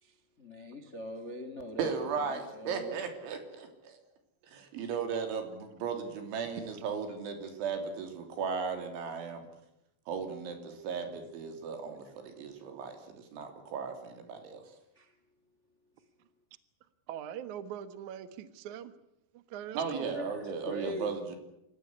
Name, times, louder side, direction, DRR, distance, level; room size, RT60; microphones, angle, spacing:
voice 1, 0.0-3.0 14.9-15.1 20.1-21.1, left 1 dB, 60° left, 9 dB, 0.7 m, -42 dB
voice 2, 1.8-4.0 4.5-9.5 10.1-14.6 19.7-21.4, right 6 dB, 80° right, 6 dB, 5.6 m, -36 dB
voice 3, 17.1-18.9 19.3-20.1, right 9 dB, 65° right, 13 dB, 1.9 m, -42 dB
27.5 x 15.5 x 9.7 m, 0.84 s
omnidirectional pair, 5.4 m